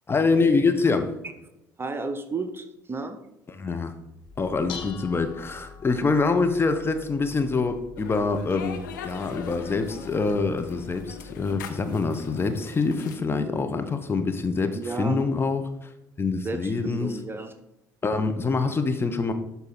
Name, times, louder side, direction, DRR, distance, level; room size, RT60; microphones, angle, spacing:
voice 1, 0.1-1.1 3.5-3.9 4.4-15.7 16.2-17.2 18.0-19.3, left 4 dB, 20° left, 7 dB, 0.9 m, -25 dB
voice 2, 1.8-3.2 14.7-15.2 16.4-17.5, right 3 dB, 20° right, 8 dB, 0.8 m, -33 dB
Dishes pots and pans, 4.2-11.6, left 7 dB, 50° left, 1.0 m, -45 dB
sound 1, 8.0-13.2, left 7 dB, 70° left, 0.7 m, -42 dB
11.5 x 4.1 x 4.1 m, 0.90 s
figure-of-eight pair, 55°, 10 cm